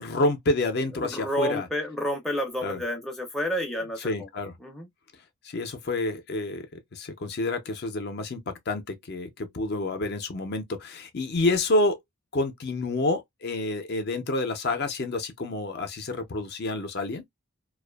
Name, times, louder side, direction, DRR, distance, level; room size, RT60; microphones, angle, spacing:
voice 1, 0.0-1.7 2.6-2.8 4.0-4.6 5.4-6.7 6.9-12.0 12.3-17.2, left 2 dB, 50° left, 0.5 m, -28 dB
voice 2, 1.0-4.3 4.6-4.9, equal, ahead, 0.5 m, -30 dB
2.5 x 2.3 x 2.2 m
head